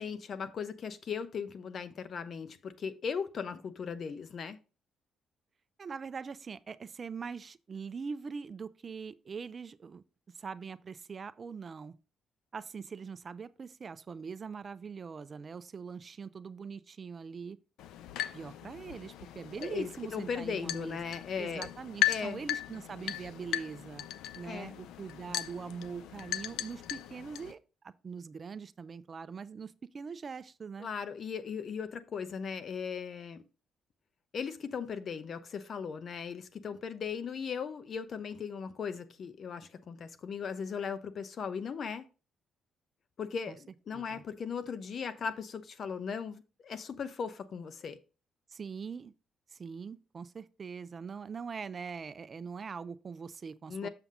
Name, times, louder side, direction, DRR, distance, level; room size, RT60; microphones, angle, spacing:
voice 1, 0.0-4.6 19.6-21.7 22.1-22.4 24.4-24.7 30.8-33.4 34.3-42.0 43.2-48.0 53.7-53.9, left 6 dB, 55° left, 0.8 m, -38 dB
voice 2, 5.8-10.0 10.3-11.9 12.5-17.6 18.3-21.0 21.4-24.0 24.4-30.9 43.5-43.6 43.9-44.2 48.5-49.1 49.5-53.9, right 5 dB, 40° right, 0.5 m, -42 dB
sound 1, 17.8-27.5, left 12 dB, 90° left, 0.4 m, -37 dB
7.1 x 5.7 x 3.7 m
cardioid pair, 90°, 0 cm